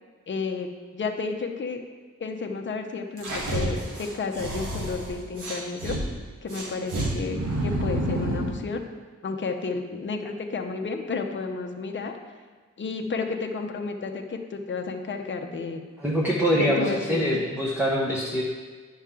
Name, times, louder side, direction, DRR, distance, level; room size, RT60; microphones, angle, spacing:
voice 1, 0.3-1.8 2.2-6.0 6.4-8.8 9.2-12.2 12.8-15.8 16.6-17.4, left 4 dB, 40° left, 4 dB, 0.7 m, -31 dB
sound 1, 3.2-6.0 6.5-8.6, right 1 dB, 85° right, 1.6 m, -29 dB
voice 2, 16.0-18.4, equal, 5° right, -5 dB, 0.8 m, -24 dB
9.7 x 5.6 x 3.7 m, 1.5 s
wide cardioid pair, 140°, 30 cm